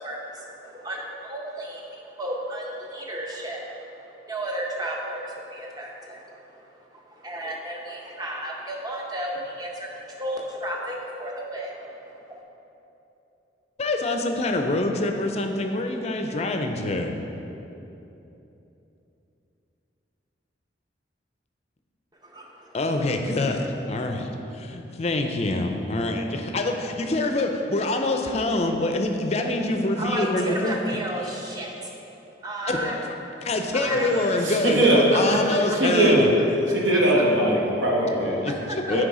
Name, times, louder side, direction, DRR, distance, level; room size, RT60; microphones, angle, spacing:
voice 1, 0.0-12.0 22.2-22.8 30.0-31.9 32.4-33.0 33.7-34.1 35.3-35.8 36.9-37.2 38.5-39.0, right 1 dB, 20° right, -1 dB, 0.7 m, -33 dB
voice 2, 13.8-17.2 22.7-30.8 31.2-31.3 32.7-33.0 33.4-36.3 38.2-39.0, left 2 dB, 35° left, 4 dB, 0.4 m, -25 dB
voice 3, 34.1-35.4 35.7-36.2 36.7-38.4 38.9-39.0, right 1 dB, 80° right, -3 dB, 1.3 m, -21 dB
9.5 x 3.3 x 4.8 m, 3.0 s
head